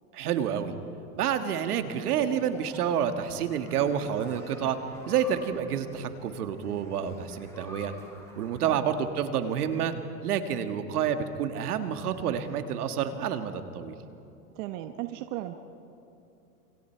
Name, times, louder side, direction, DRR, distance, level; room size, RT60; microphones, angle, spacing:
voice 1, 0.1-0.7 1.1-4.8 5.1-7.9 8.4-9.9 10.2-13.9, right 8 dB, 80° right, 7 dB, 2.0 m, -29 dB
sound 1, 2.1-8.6, left 1 dB, 5° left, 7.1 m, -50 dB
voice 2, 14.5-15.5, right 14 dB, 55° right, 7 dB, 1.3 m, -36 dB
28.0 x 26.5 x 4.7 m, 2.7 s
hypercardioid pair, 120°, 44 cm